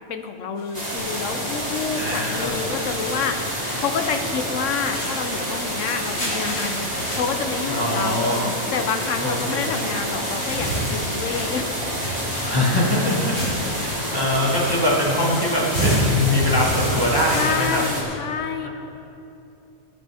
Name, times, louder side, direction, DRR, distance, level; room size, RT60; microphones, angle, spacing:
voice 1, 0.1-8.4 8.7-11.7 17.3-18.7, left 6 dB, 60° left, 7 dB, 1.1 m, -28 dB
sound 1, 0.6-17.9, equal, 80° left, 4.3 m, -31 dB
sound 2, 0.7-18.0, equal, 25° right, 2.7 m, -28 dB
voice 2, 2.0-2.5 7.7-8.6 9.2-9.8 12.4-17.8 18.6-18.7, left 1 dB, 15° left, -5 dB, 2.2 m, -23 dB
18.5 x 10.5 x 3.5 m, 2.8 s
omnidirectional pair, 1.6 m